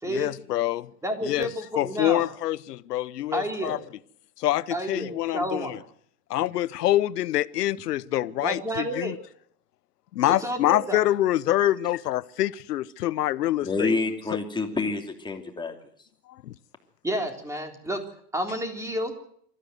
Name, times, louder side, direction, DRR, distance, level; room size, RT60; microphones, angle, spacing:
voice 1, 0.1-0.9 1.2-1.5 1.8-3.8 4.4-5.8 6.3-9.2 10.1-14.0 16.4-16.5, left 14 dB, 85° left, 0.8 m, -25 dB
voice 2, 1.0-2.2 3.3-3.8 4.7-5.8 8.4-9.1 10.4-11.0 17.0-18.0 18.3-19.1, equal, 5° right, 3.7 m, -30 dB
voice 3, 13.6-16.1, left 3 dB, 10° left, 3.0 m, -29 dB
25.5 x 14.0 x 8.0 m
hypercardioid pair, 120°, 46 cm